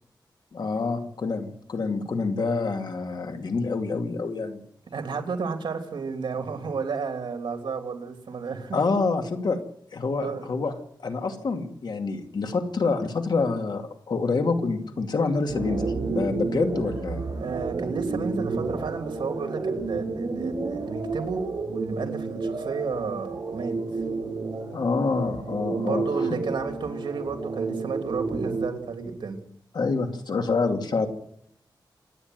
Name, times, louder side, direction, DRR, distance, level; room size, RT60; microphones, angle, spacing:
voice 1, 0.5-4.6 8.7-9.6 9.9-10.7 11.0-17.2 24.7-26.3 29.7-31.1, left 4 dB, 60° left, 5 dB, 2.5 m, -27 dB
voice 2, 4.9-8.8 10.2-10.5 17.4-23.8 25.7-29.4, right 5 dB, 75° right, 5 dB, 3.2 m, -32 dB
sound 1, 15.5-28.7, right 3 dB, 55° right, 7.3 m, -31 dB
27.0 x 10.0 x 9.4 m, 0.72 s
wide cardioid pair, 115°, 8 cm